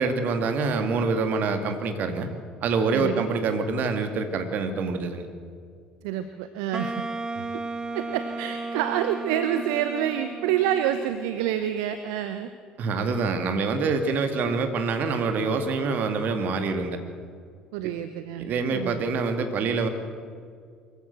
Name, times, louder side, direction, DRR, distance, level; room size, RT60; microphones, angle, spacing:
voice 1, 0.0-2.3 2.6-5.3 12.8-17.0 17.8-17.9 18.4-19.9, right 4 dB, 50° right, 7 dB, 2.0 m, -26 dB
voice 2, 2.9-3.3 6.0-7.0 7.9-12.5 17.7-19.0, right 10 dB, 65° right, 10 dB, 0.8 m, -28 dB
Wind instrument woodwind instrument, 6.7-11.7, right 3 dB, 20° right, 0.9 m, -34 dB
23.5 x 14.5 x 8.0 m, 2.2 s
figure-of-eight pair, 55°, 4 cm